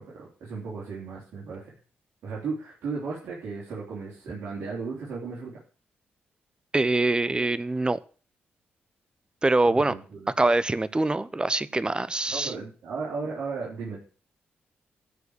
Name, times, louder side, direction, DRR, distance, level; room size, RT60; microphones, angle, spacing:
voice 1, 0.0-1.7 2.2-5.6 9.7-10.3 12.3-14.0, right 4 dB, 75° right, 3.7 m, -35 dB
voice 2, 6.7-8.0 9.4-9.9 10.4-12.5, right 2 dB, 20° right, 0.9 m, -24 dB
13.0 x 4.9 x 8.3 m
cardioid pair, 60°, 4 cm